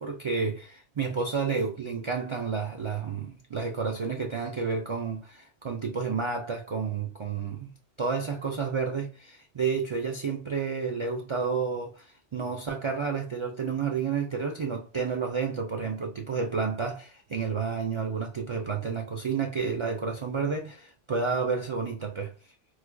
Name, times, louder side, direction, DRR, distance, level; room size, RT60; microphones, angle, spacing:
voice 1, 0.0-7.7 8.0-22.3, right 5 dB, 50° right, 0.3 m, -30 dB
4.6 x 2.3 x 2.2 m
omnidirectional pair, 1.1 m